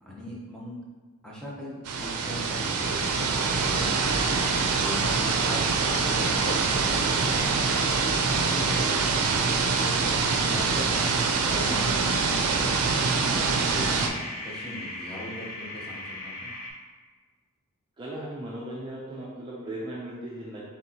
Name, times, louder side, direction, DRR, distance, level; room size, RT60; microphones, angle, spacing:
voice 1, 0.0-0.8 1.2-4.5 4.8-9.8 10.5-11.1 11.5-14.2 14.4-16.5, equal, 5° left, -5 dB, 0.7 m, -40 dB
sound 1, 1.8-14.1, right 4 dB, 90° right, 0.4 m, -25 dB
sound 2, 7.9-12.3 13.4-16.7, left 2 dB, 40° left, 1.0 m, -41 dB
voice 2, 18.0-20.6, right 1 dB, 20° right, -5 dB, 0.5 m, -37 dB
4.4 x 3.6 x 2.8 m, 1.4 s
head